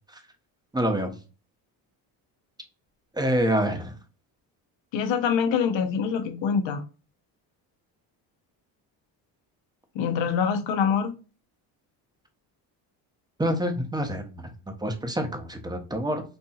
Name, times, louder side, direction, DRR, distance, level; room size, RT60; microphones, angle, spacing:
voice 1, 0.7-1.2 3.1-3.9 13.4-14.5 14.8-16.2, right 1 dB, 10° right, 0.9 m, -26 dB
voice 2, 4.9-6.8 9.9-11.1, left 6 dB, 60° left, 0.9 m, -25 dB
4.3 x 2.6 x 2.3 m
supercardioid pair, 70°, 50 cm